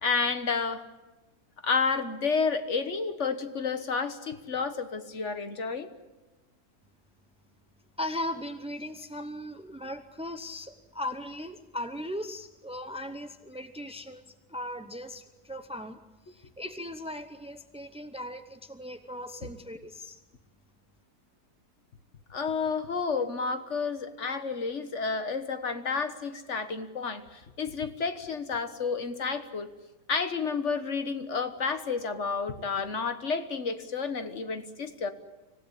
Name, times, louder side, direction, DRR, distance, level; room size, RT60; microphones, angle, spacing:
voice 1, 0.0-0.8 1.6-5.9 22.3-29.7 30.1-35.1, left 5 dB, 50° left, 9 dB, 1.6 m, -30 dB
voice 2, 8.0-16.0 16.3-20.2, left 1 dB, 5° right, 9 dB, 0.4 m, -38 dB
26.5 x 16.5 x 9.8 m, 1.1 s
omnidirectional pair, 1.7 m